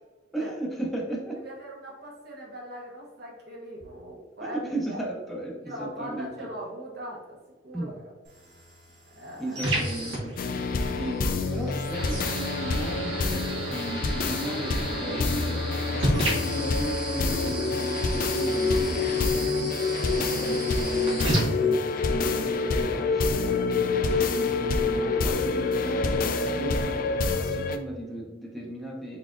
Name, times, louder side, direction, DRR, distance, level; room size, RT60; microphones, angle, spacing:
voice 1, 0.3-1.4 4.4-6.5 7.7-7.9 9.4-10.4 11.0-15.6 15.9-19.9 20.1-29.2, right 1 dB, ahead, -3 dB, 0.6 m, -36 dB
voice 2, 1.4-4.6 4.9-5.0 5.6-7.2 7.6-8.1 9.1-9.8 10.8-11.0, equal, 60° right, -3 dB, 1.0 m, -40 dB
sound 1, 8.2-22.2, right 1 dB, 75° right, 1.4 m, -33 dB
sound 2, 10.4-27.8, left 3 dB, 50° left, 0.3 m, -27 dB
4.1 x 3.9 x 2.4 m, 1.3 s
head